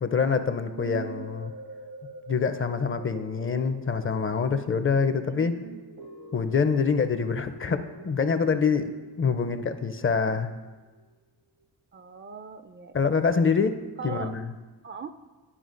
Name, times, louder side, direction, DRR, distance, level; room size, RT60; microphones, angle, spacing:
voice 1, 0.0-1.5 2.3-5.6 6.3-8.9 9.2-10.5 12.9-14.5, left 5 dB, 35° left, 10 dB, 0.5 m, -25 dB
voice 2, 0.6-1.3 5.1-5.8 11.9-13.3 14.0-14.3 14.8-15.1, right 7 dB, 30° right, 10 dB, 0.4 m, -40 dB
sound 1, 0.8-11.1 11.6-11.7, right 2 dB, 65° right, 0.9 m, -46 dB
11.0 x 5.0 x 2.5 m, 1.3 s
cardioid pair, 50°, 39 cm